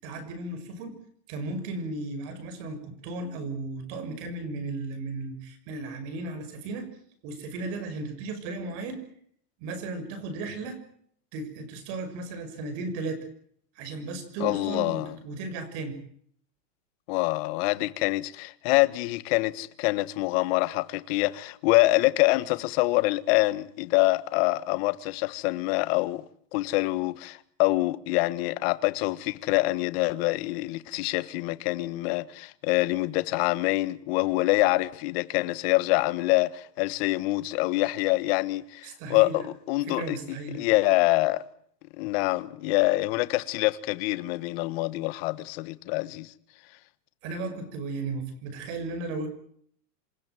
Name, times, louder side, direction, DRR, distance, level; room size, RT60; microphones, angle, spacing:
voice 1, 0.0-1.0 1.3-6.9 7.2-9.1 9.6-10.8 11.3-13.3 13.8-16.0 38.8-39.4 39.8-40.6 47.2-49.3, right 3 dB, 40° right, 6.4 m, -35 dB
voice 2, 14.4-15.2 17.1-26.2 26.5-40.2 40.5-41.4 42.0-46.3, left 20 dB, 40° left, 1.4 m, -25 dB
28.0 x 16.0 x 9.3 m
supercardioid pair, 160°, 49 cm